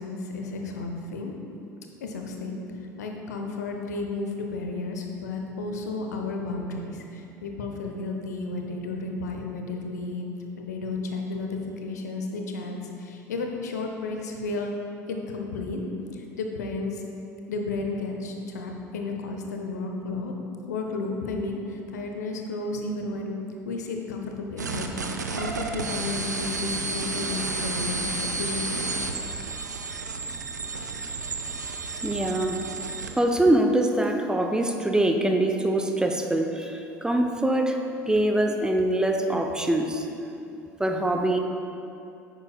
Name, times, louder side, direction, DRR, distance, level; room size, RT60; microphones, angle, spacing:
voice 1, 0.0-1.3 2.0-10.3 10.6-14.7 15.1-15.8 16.1-17.0 17.5-20.3 20.7-23.4 23.6-28.9, left 3 dB, 70° left, 2 dB, 0.8 m, -33 dB
sound 1, 24.6-33.1, right 3 dB, 80° right, 0.5 m, -31 dB
voice 2, 32.0-32.6 33.2-37.8 38.1-40.1 40.8-41.4, right 1 dB, 10° right, 3 dB, 0.6 m, -23 dB
9.6 x 9.0 x 2.3 m, 2.7 s
figure-of-eight pair, 65°, 9 cm